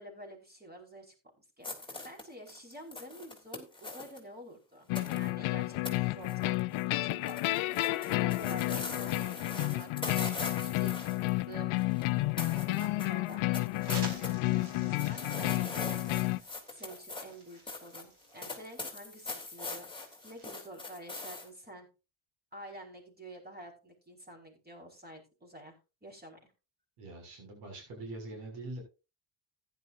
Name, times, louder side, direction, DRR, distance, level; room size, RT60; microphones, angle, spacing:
voice 1, 0.0-6.6 7.0-7.4 8.0-10.0 10.6-11.7 12.5-21.9 22.5-25.8 26.0-26.5, right 1 dB, 20° right, 1 dB, 5.3 m, -49 dB
sound 1, 1.6-4.2 4.9-5.3 5.8-6.0 6.2-6.8 7.1-12.1 12.4-14.3 14.6-21.5, left 3 dB, 10° left, 3.4 m, -42 dB
sound 2, 4.9-16.4, left 20 dB, 75° left, 0.7 m, -31 dB
sound 3, 13.8-20.6, right 2 dB, 50° right, 4.7 m, -50 dB
voice 2, 27.0-28.8, right 2 dB, 85° right, 2 dB, 6.5 m, -43 dB
15.0 x 11.0 x 2.6 m, 0.30 s
cardioid pair, 95°, 50 cm